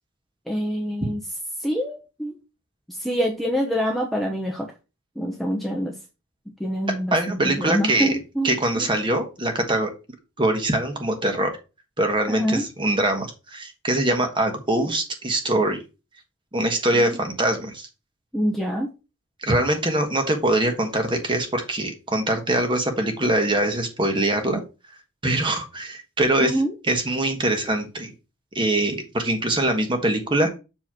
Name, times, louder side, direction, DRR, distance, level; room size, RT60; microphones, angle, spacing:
voice 1, 0.5-1.2 1.6-2.3 2.9-4.7 5.2-5.9 6.6-8.9 12.3-12.6 16.9-17.2 18.3-18.9 26.4-26.7, equal, ahead, 0 dB, 0.8 m, -26 dB
voice 2, 7.1-8.2 8.4-9.9 10.4-11.5 12.0-15.8 16.5-17.9 19.4-24.6 25.2-28.1 28.5-30.5, right 1 dB, 20° right, 5 dB, 1.3 m, -23 dB
7.4 x 3.2 x 6.0 m, 0.29 s
head